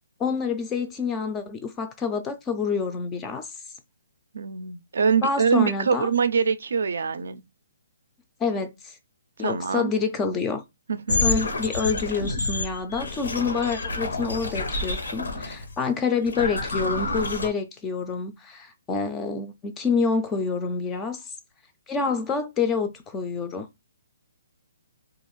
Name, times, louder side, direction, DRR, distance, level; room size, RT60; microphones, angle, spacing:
voice 1, 0.2-3.5 5.2-6.1 8.4-9.0 9.4-10.6 11.2-21.2 21.9-23.7, left 5 dB, 10° left, 0.3 m, -27 dB
voice 2, 4.3-7.4 9.4-9.9 10.9-11.3, right 6 dB, 70° right, 0.4 m, -24 dB
sound 1, 11.1-15.7 16.3-17.5, left 3 dB, 90° left, 0.8 m, -28 dB
2.4 x 2.4 x 3.0 m
hypercardioid pair, 165°, 0 cm